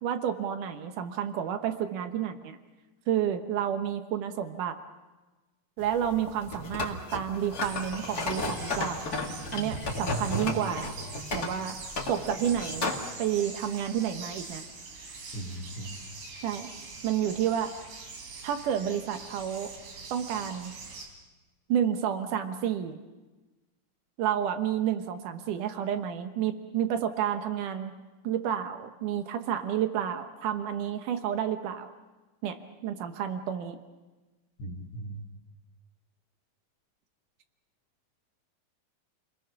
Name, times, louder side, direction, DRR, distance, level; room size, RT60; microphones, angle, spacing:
voice 1, 0.0-2.6 3.1-4.8 5.8-9.1 9.5-10.9 11.3-11.8 12.1-12.9 13.2-14.7 16.4-16.7 17.0-17.7 18.4-19.7 20.1-20.7 21.7-23.0 24.2-28.0 28.2-31.9 32.4-33.8, right 9 dB, 70° right, 8 dB, 2.0 m, -30 dB
sound 1, 5.8-13.1, left 2 dB, 35° left, 1.5 m, -34 dB
sound 2, 7.6-21.1, right 4 dB, 90° right, 5.9 m, -43 dB
voice 2, 15.3-16.0 34.6-35.2, right 1 dB, 65° left, -7 dB, 3.9 m, -38 dB
30.0 x 21.5 x 6.0 m, 1.2 s
omnidirectional pair, 5.2 m